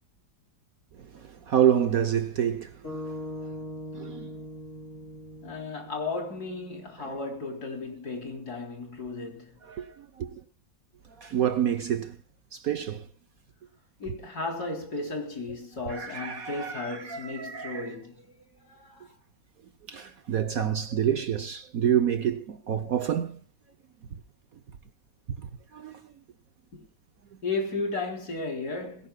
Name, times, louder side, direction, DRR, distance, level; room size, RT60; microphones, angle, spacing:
voice 1, 1.1-3.0 3.9-4.3 7.0-7.1 9.7-10.3 11.2-12.2 12.5-13.0 15.9-17.9 19.9-23.4 25.7-26.0, right 9 dB, 60° right, 1.1 m, -28 dB
sound 1, 2.8-7.1, left 1 dB, 40° left, 8.5 m, -41 dB
voice 2, 5.4-9.6 14.0-18.4 18.6-19.1 26.7-26.8 27.4-29.1, left 3 dB, 55° left, 4.1 m, -34 dB
22.0 x 16.5 x 2.3 m
omnidirectional pair, 2.0 m